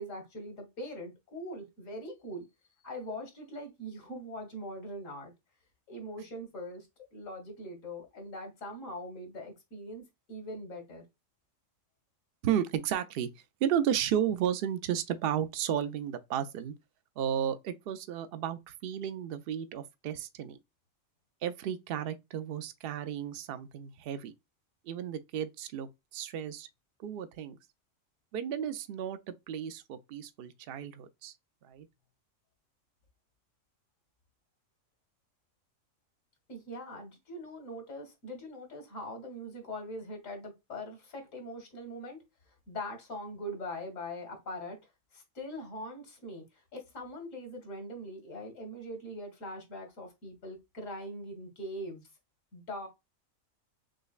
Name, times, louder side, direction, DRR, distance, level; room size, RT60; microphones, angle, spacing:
voice 1, 0.0-2.5 2.8-5.3 5.9-10.0 10.3-11.1 36.5-42.2 42.7-44.8 45.1-46.4 46.7-52.0 52.5-52.9, equal, 80° left, 1.7 m, -42 dB
voice 2, 12.4-13.3 13.6-16.8 17.2-20.6 21.4-24.3 24.8-26.7 27.0-27.6 28.3-31.4 31.6-31.9, right 9 dB, 60° right, 0.6 m, -33 dB
6.3 x 2.1 x 2.4 m
omnidirectional pair, 1.4 m